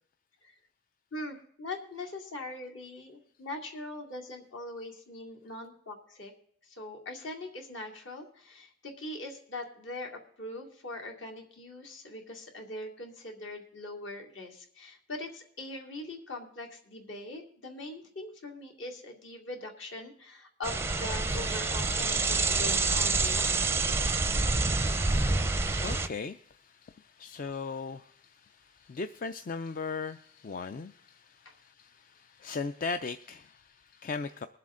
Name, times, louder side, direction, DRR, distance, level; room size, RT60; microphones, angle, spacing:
voice 1, 1.1-6.3 6.6-23.7 31.4-31.5, left 2 dB, 65° left, 2 dB, 2.6 m, -42 dB
sound 1, 20.6-26.1, right 3 dB, 10° right, 0.5 m, -27 dB
voice 2, 24.7-34.5, left 4 dB, 40° left, 10 dB, 0.4 m, -39 dB
21.5 x 7.5 x 3.7 m, 0.66 s
head